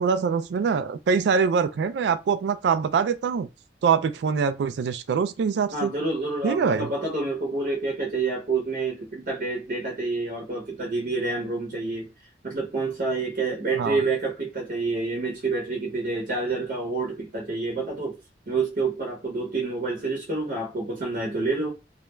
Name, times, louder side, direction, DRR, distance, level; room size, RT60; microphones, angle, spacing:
voice 1, 0.0-3.5 3.8-5.9 6.4-6.9 13.8-14.0, right 6 dB, 70° right, 0.3 m, -24 dB
voice 2, 5.7-12.1 12.4-18.2 18.5-21.7, right 3 dB, 50° right, 0.7 m, -28 dB
2.3 x 2.1 x 3.0 m
head